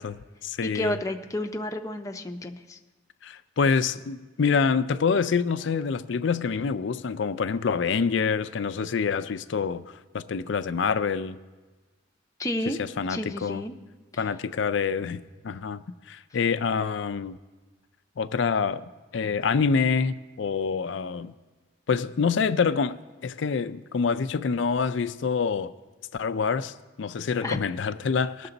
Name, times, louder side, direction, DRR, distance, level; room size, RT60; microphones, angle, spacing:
voice 1, 0.0-1.0 3.2-11.4 12.7-13.6 14.2-17.4 18.2-21.3 21.9-25.7 26.1-28.5, left 5 dB, 65° left, 0.4 m, -26 dB
voice 2, 0.6-2.8 12.4-12.8 13.1-13.7 14.1-14.2 27.4-27.6, left 1 dB, 15° left, 0.6 m, -31 dB
19.0 x 6.7 x 3.9 m
head